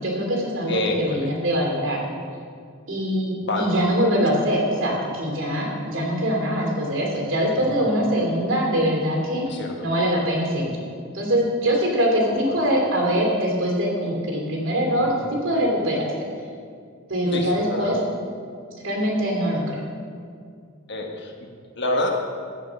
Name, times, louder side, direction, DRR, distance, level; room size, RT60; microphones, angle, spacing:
voice 1, 0.0-2.0 2.9-9.5 9.8-10.7 11.1-15.1 15.4-16.1 17.1-18.0 18.8-19.8, equal, 65° right, -1 dB, 2.8 m, -23 dB
voice 2, 0.7-1.3 3.4-3.9 7.6-7.9 9.5-9.9 12.3-12.6 15.0-15.1 17.3-18.0 20.9-21.3 21.7-22.1, left 2 dB, 55° left, 2 dB, 1.4 m, -28 dB
16.0 x 5.6 x 6.2 m, 2.2 s
head